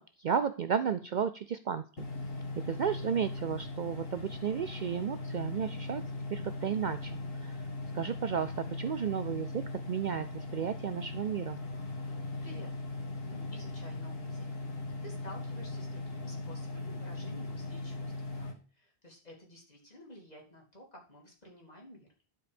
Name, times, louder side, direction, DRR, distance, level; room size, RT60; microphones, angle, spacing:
voice 1, 0.0-2.1 2.6-6.0 6.3-7.6 7.9-11.6, right 7 dB, 55° right, 10 dB, 0.6 m, -33 dB
sound 1, 2.0-18.5, left 2 dB, 65° left, 1.8 m, -39 dB
voice 2, 12.4-12.7 13.2-14.5 15.0-22.1, left 1 dB, 40° left, -1 dB, 2.8 m, -52 dB
11.5 x 4.8 x 5.1 m, 0.37 s
omnidirectional pair, 1.1 m